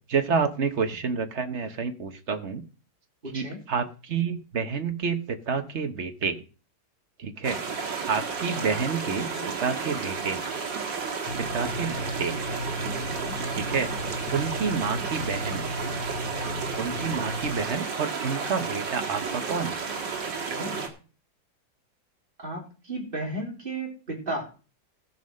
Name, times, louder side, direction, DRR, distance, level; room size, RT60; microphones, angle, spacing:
voice 1, 0.1-2.6 3.3-6.4 7.2-7.6 8.1-10.4 11.5-12.3 13.5-13.9 14.3-15.7 16.8-19.8, right 5 dB, 45° right, 8 dB, 1.2 m, -29 dB
voice 2, 3.2-3.6 8.5-9.0 9.3-9.9 12.9-13.4 20.5-20.9 22.4-24.5, right 1 dB, 30° right, 0 dB, 3.4 m, -35 dB
sound 1, 7.4-20.9, right 5 dB, 80° right, 2.5 m, -32 dB
sound 2, 11.3-17.7, left 1 dB, 65° left, 1.3 m, -35 dB
15.0 x 5.6 x 6.4 m, 0.35 s
omnidirectional pair, 2.0 m